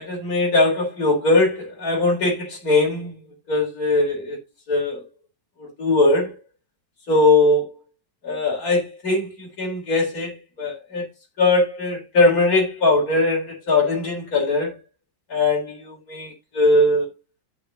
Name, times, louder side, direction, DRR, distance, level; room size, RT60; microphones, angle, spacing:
voice 1, 0.0-3.1 3.5-4.4 4.7-5.0 5.6-6.4 7.1-7.7 8.2-11.1 11.4-14.8 15.3-17.1, left 2 dB, 50° left, 4.2 m, -20 dB
13.0 x 5.7 x 2.9 m
omnidirectional pair, 2.0 m